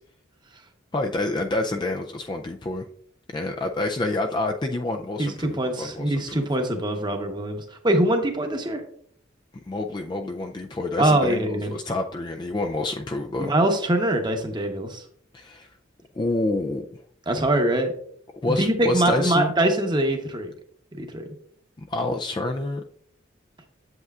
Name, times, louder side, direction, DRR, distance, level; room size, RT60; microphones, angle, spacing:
voice 1, 0.9-2.8 3.3-6.5 9.7-13.5 15.3-15.7 16.2-17.0 18.4-19.5 21.8-22.8, left 2 dB, 20° left, 3 dB, 0.3 m, -28 dB
voice 2, 5.2-8.8 11.0-11.7 13.4-15.0 17.3-17.9 18.6-20.5 21.0-21.3, right 1 dB, 20° right, 5 dB, 0.9 m, -23 dB
8.0 x 7.8 x 2.4 m, 0.62 s
head